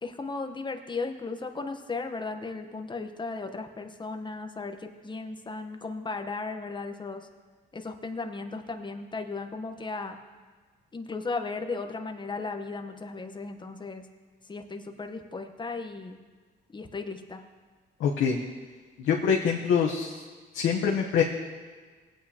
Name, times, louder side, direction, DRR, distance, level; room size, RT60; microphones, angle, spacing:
voice 1, 0.0-7.3 7.7-10.2 10.9-14.1 14.5-16.2 16.7-17.4, left 3 dB, 25° left, 6 dB, 1.0 m, -36 dB
voice 2, 18.0-18.4 19.0-20.2 20.5-21.2, left 7 dB, 85° left, -1 dB, 1.0 m, -24 dB
18.0 x 8.9 x 2.9 m, 1.4 s
cardioid pair, 90°, 20 cm